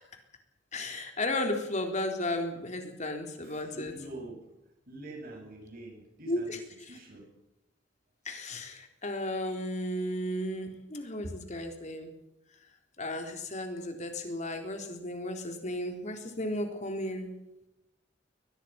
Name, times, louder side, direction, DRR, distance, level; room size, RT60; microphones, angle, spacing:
voice 1, 0.7-3.9 6.3-6.6 8.3-12.1 13.0-17.4, left 1 dB, 40° left, 4 dB, 3.9 m, -34 dB
voice 2, 3.4-4.6 4.9-6.6 6.9-7.4, right 2 dB, 50° right, 2 dB, 7.7 m, -46 dB
23.0 x 20.0 x 6.0 m, 0.88 s
head